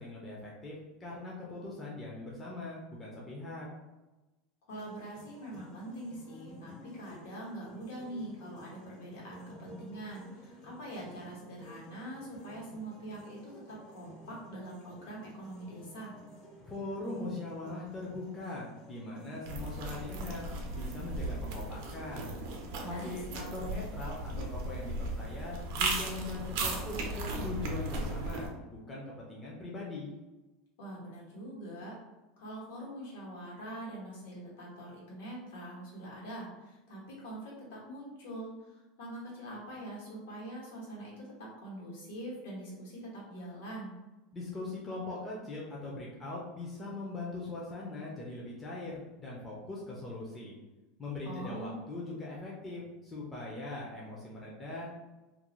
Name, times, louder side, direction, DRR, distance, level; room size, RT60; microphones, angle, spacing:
voice 1, 0.0-3.7 16.6-22.3 22.9-30.1 44.3-50.5 51.0-55.0, left 2 dB, 15° left, -5 dB, 0.4 m, -41 dB
voice 2, 4.7-16.1 22.8-23.4 30.8-32.0 32.4-43.9 51.2-51.8, right 1 dB, 85° left, -4 dB, 1.1 m, -44 dB
sound 1, 4.7-23.1, left 1 dB, 45° left, 0.7 m, -53 dB
sound 2, 19.4-28.5, right 2 dB, 60° right, 0.4 m, -36 dB
2.4 x 2.0 x 2.9 m, 1.1 s
supercardioid pair, 165°, 0 cm